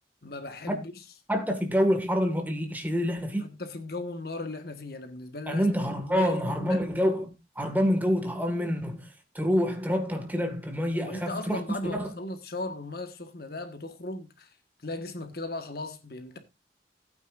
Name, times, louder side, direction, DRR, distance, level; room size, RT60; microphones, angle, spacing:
voice 1, 0.2-0.9 3.4-5.7 6.0-6.8 10.8-14.5 14.8-16.4, left 2 dB, 60° left, 1.5 m, -37 dB
voice 2, 1.3-3.5 5.5-12.1, equal, 10° right, 1.9 m, -27 dB
16.5 x 9.1 x 2.6 m
head